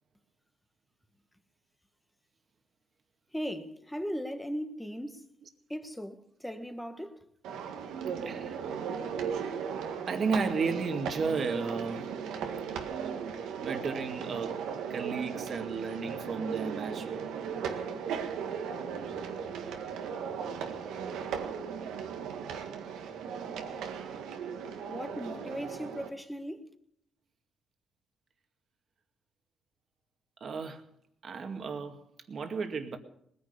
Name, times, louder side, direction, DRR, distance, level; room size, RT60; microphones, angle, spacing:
voice 1, 3.3-5.3 5.7-7.2 24.9-26.7, equal, 5° left, 1.6 m, -38 dB
sound 1, 7.4-26.1, right 7 dB, 90° right, 1.8 m, -37 dB
voice 2, 8.2-8.6 10.1-12.0 13.6-14.6 14.9-17.3 30.4-30.8 31.2-33.0, right 4 dB, 50° right, 2.1 m, -33 dB
20.0 x 10.0 x 6.7 m
cardioid pair, 90°, 0 cm